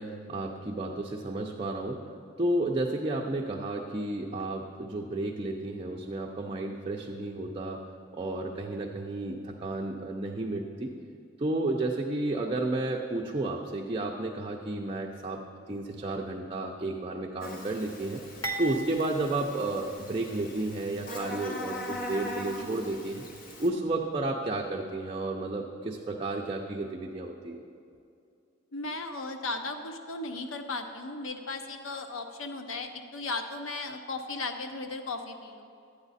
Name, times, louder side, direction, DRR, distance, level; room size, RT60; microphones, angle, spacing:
voice 1, 0.0-2.0 2.4-7.8 8.1-10.9 11.4-15.4 15.7-18.2 18.6-23.3 23.6-27.6, right 2 dB, 25° right, -1 dB, 0.5 m, -32 dB
Buzz, 17.4-23.7, left 1 dB, 45° left, 1.1 m, -41 dB
sound 1, 18.4-20.6 20.9-21.1 22.0-22.1, right 2 dB, 20° left, 0.9 m, -39 dB
voice 2, 28.7-35.7, left 3 dB, 80° left, 6 dB, 0.7 m, -36 dB
12.5 x 8.9 x 4.1 m, 2.5 s
head